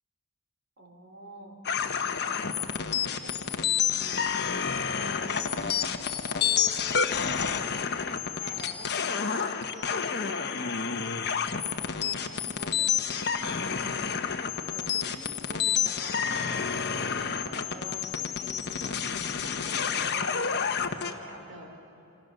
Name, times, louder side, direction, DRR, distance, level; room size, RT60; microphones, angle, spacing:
voice 1, 0.8-1.6 2.1-5.9 8.3-10.9 11.5-16.7 17.4-20.5 20.9-21.8, right 1 dB, 55° right, 2 dB, 4.0 m, -47 dB
sound 1, 1.6-21.1, left 7 dB, 50° left, 1.2 m, -29 dB
27.5 x 27.0 x 6.8 m, 3.0 s
head